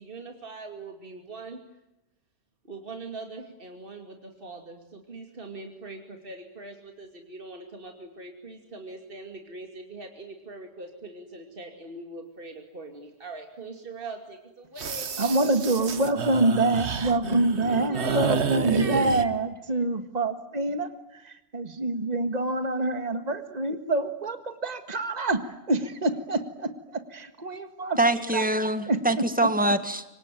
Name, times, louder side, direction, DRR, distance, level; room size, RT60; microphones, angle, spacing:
voice 1, 0.0-1.6 2.6-15.5 17.9-19.3, right 3 dB, 55° right, 4 dB, 2.8 m, -42 dB
sound 1, 14.8-19.2, right 5 dB, 75° right, 1.6 m, -29 dB
voice 2, 15.2-28.0 28.3-28.5 28.9-29.5, right 2 dB, 35° right, 8 dB, 1.8 m, -26 dB
voice 3, 28.0-30.0, right 1 dB, 5° right, 10 dB, 1.7 m, -24 dB
26.0 x 25.0 x 9.2 m, 0.92 s
omnidirectional pair, 1.2 m